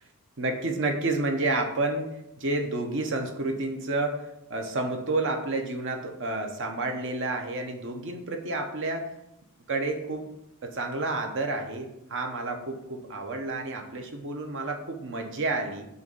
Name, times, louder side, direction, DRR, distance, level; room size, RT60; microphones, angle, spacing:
voice 1, 0.4-9.1 9.7-10.3 10.6-15.9, right 2 dB, 55° right, 4 dB, 0.9 m, -30 dB
6.8 x 2.5 x 5.4 m, 0.84 s
head